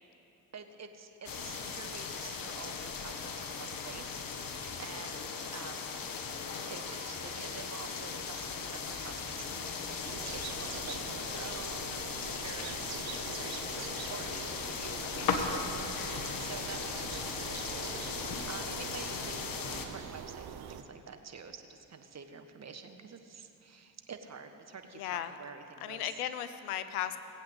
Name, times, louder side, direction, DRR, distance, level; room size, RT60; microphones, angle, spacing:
voice 1, 0.5-6.0 6.6-26.1, right 5 dB, 35° right, 7 dB, 1.4 m, -48 dB
sound 1, 1.3-19.9, left 5 dB, 50° left, 1.6 m, -38 dB
sound 2, 6.7-11.9, right 1 dB, 15° right, 2.1 m, -57 dB
sound 3, 10.0-20.8, right 8 dB, 55° right, 1.0 m, -44 dB
voice 2, 24.9-25.4 25.8-27.2, left 11 dB, 90° left, 11 dB, 0.8 m, -36 dB
19.0 x 8.2 x 8.1 m, 2.9 s
hypercardioid pair, 55°, 43 cm